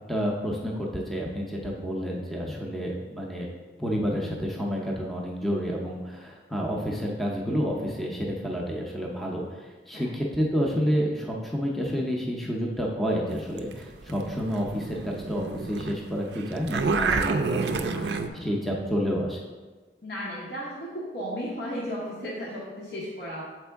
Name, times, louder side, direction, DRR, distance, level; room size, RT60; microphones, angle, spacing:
voice 1, 0.1-3.5 3.8-19.4, equal, ahead, -2 dB, 0.5 m, -29 dB
sound 1, 13.3-15.9 16.2-18.3, right 4 dB, 65° right, 0.4 m, -29 dB
voice 2, 17.4-18.5 20.0-20.9 21.1-23.4, equal, 60° left, -6 dB, 1.0 m, -35 dB
7.0 x 4.4 x 3.4 m, 1.3 s
head